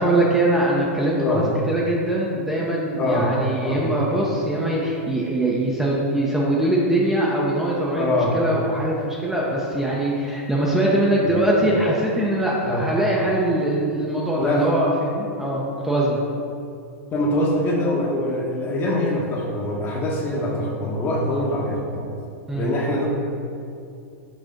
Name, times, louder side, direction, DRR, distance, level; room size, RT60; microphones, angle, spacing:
voice 1, 0.0-16.2 21.3-21.4 22.5-22.7, right 1 dB, 5° right, -5 dB, 0.7 m, -22 dB
voice 2, 3.0-3.3 3.6-3.9 8.0-8.4 11.2-11.7 12.6-12.9 14.4-14.7 17.1-22.0 22.5-23.1, left 1 dB, 25° left, -1 dB, 1.1 m, -24 dB
6.3 x 3.3 x 5.1 m, 2.5 s
hypercardioid pair, 130°, 8 cm